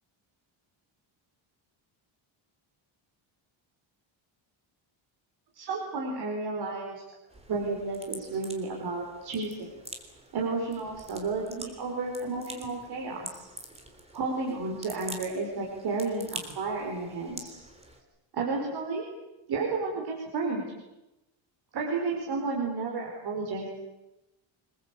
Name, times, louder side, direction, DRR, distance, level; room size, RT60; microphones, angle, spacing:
voice 1, 5.5-7.0 7.5-9.7 10.3-13.5 14.1-17.6 18.3-19.0 19.5-20.6 21.7-23.7, right 3 dB, 50° right, -1 dB, 4.8 m, -32 dB
sound 1, 7.3-18.0, right 2 dB, 15° right, 3.4 m, -46 dB
26.0 x 21.5 x 8.4 m, 0.98 s
cardioid pair, 170°, 48 cm